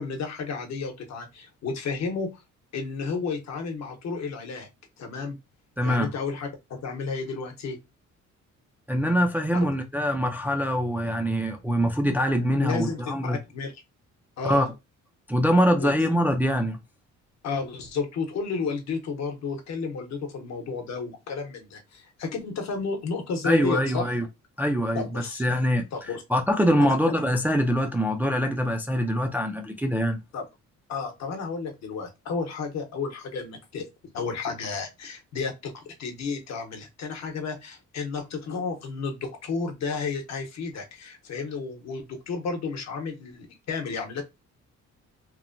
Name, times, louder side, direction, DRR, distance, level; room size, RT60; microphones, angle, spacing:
voice 1, 0.0-2.4 2.7-4.7 5.0-5.4 5.8-7.8 9.5-9.7 12.6-13.7 14.4-14.7 15.8-15.9 17.4-24.1 24.9-25.4 25.9-26.2 26.8-27.1 30.3-30.4 30.9-33.9 34.1-44.2, left 4 dB, 60° left, 0.9 m, -32 dB
voice 2, 5.8-6.1 8.9-13.4 14.4-14.7 15.3-16.8 23.4-24.2 24.6-30.2, equal, 5° right, 0.3 m, -24 dB
3.0 x 2.1 x 2.5 m
cardioid pair, 125°, 30 cm